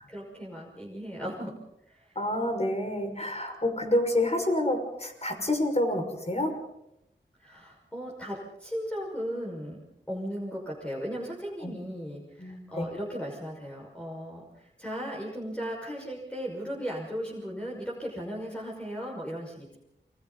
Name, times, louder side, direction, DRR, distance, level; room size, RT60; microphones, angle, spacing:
voice 1, 0.1-1.5 1.9-2.2 7.4-9.8 10.1-19.8, equal, 5° left, -3 dB, 5.9 m, -36 dB
voice 2, 2.2-6.5 11.6-11.7 12.4-12.9, left 1 dB, 35° left, 4 dB, 5.8 m, -28 dB
29.0 x 23.5 x 4.2 m, 0.82 s
cardioid pair, 40°, 20 cm